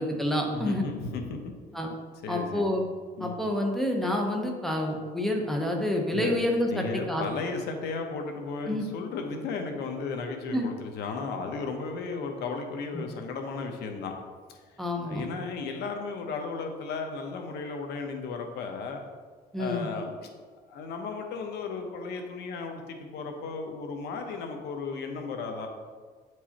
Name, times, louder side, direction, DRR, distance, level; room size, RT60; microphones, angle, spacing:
voice 1, 0.0-0.8 1.7-1.9 2.3-2.9 3.2-7.2 8.7-8.8 10.5-10.6 12.9-13.0 14.8-15.3 19.5-19.9, left 1 dB, ahead, 1 dB, 1.0 m, -28 dB
voice 2, 0.5-1.5 2.2-2.8 3.2-3.4 6.1-6.3 6.7-14.2 14.5-14.6 15.0-19.0 19.5-20.3 20.7-25.7, left 4 dB, 80° left, 4 dB, 1.0 m, -35 dB
8.0 x 4.7 x 3.0 m, 1.5 s
cardioid pair, 110°, 17 cm